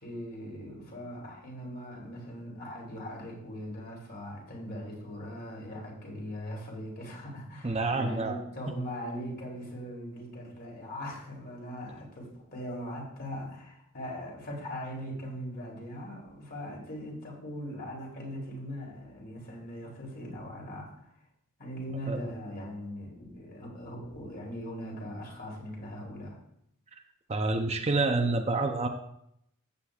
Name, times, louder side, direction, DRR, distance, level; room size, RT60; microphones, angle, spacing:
voice 1, 0.0-20.9 21.6-26.4, equal, 45° left, -2 dB, 3.3 m, -40 dB
voice 2, 7.6-8.4 22.1-22.2 27.3-28.9, right 3 dB, 30° right, 5 dB, 0.7 m, -28 dB
14.0 x 8.3 x 2.4 m, 0.74 s
head